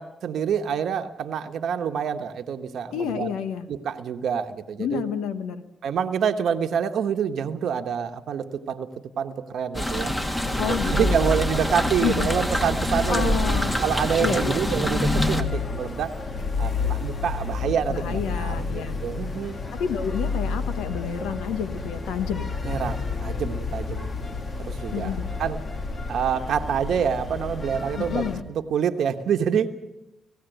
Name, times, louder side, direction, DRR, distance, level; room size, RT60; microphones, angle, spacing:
voice 1, 0.0-3.3 3.7-5.0 5.8-8.9 9.2-10.1 10.7-13.4 13.8-16.2 16.6-19.6 22.6-24.1 24.6-25.1 25.4-25.6 26.1-29.7, right 7 dB, 80° right, 6 dB, 1.0 m, -27 dB
voice 2, 2.9-3.7 4.8-5.6 10.6-11.3 12.0-12.3 13.1-13.8 14.2-14.7 17.9-19.0 19.7-22.5 24.9-25.3 28.0-28.4, left 7 dB, 90° left, 11 dB, 1.1 m, -29 dB
sound 1, 9.7-15.4, left 1 dB, 15° left, 2.3 m, -25 dB
sound 2, 10.4-28.4, left 4 dB, 50° left, 2.0 m, -31 dB
19.5 x 16.0 x 9.0 m, 0.95 s
supercardioid pair, 55°, 0 cm